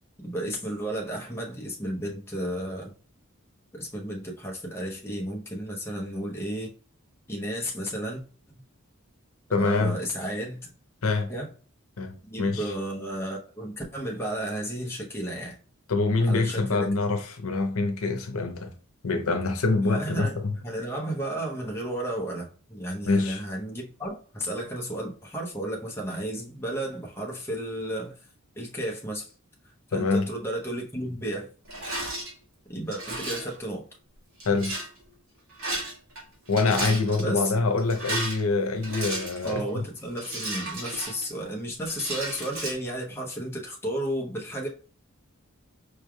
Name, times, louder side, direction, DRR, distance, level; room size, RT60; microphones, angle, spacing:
voice 1, 0.2-2.9 3.7-6.7 7.3-8.2 8.5-8.6 9.6-10.7 11.3-11.5 12.3-15.6 16.2-16.9 19.8-28.2 28.6-29.3 29.9-31.5 32.7-33.8 37.2-37.5 39.4-44.7, right 1 dB, 10° left, 0.7 m, -33 dB
voice 2, 9.5-10.0 11.0-11.3 12.0-12.7 15.9-18.7 19.0-20.5 23.1-23.4 29.9-30.3 34.4-34.7 36.5-39.6, left 3 dB, 85° left, 0.7 m, -25 dB
Rattle, 31.7-32.3 32.9-33.5 34.4-34.9 35.5-36.2 36.5-37.2 37.8-39.6 40.2-41.5 41.8-42.7, right 1 dB, 70° right, 1.7 m, -33 dB
4.7 x 3.3 x 2.2 m
head